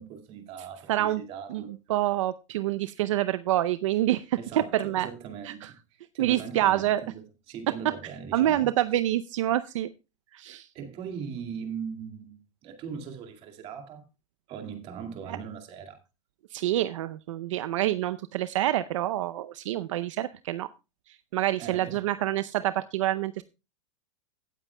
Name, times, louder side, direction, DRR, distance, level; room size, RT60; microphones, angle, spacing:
voice 1, 0.0-1.7 4.4-5.8 6.1-8.7 10.7-14.0 14.5-16.0 21.6-22.0, right 7 dB, 35° right, 2.1 m, -40 dB
voice 2, 0.9-1.2 1.5-5.1 5.4-5.7 6.2-7.0 8.3-9.9 10.3-10.7 15.3-15.4 16.5-20.7 21.1-23.4, right 13 dB, 70° right, 0.6 m, -27 dB
16.5 x 9.0 x 2.2 m
supercardioid pair, 145°, 16 cm